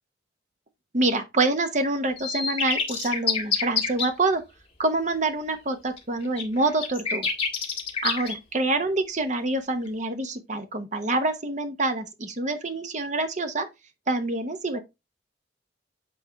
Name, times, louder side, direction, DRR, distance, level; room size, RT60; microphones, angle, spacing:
voice 1, 0.9-4.4 4.8-7.3 8.0-13.7 14.1-14.8, right 2 dB, 40° right, 1.0 m, -26 dB
sound 1, 2.2-4.1 6.0-6.1 6.4-8.3, left 6 dB, 30° left, 1.9 m, -27 dB
7.8 x 4.4 x 3.4 m
head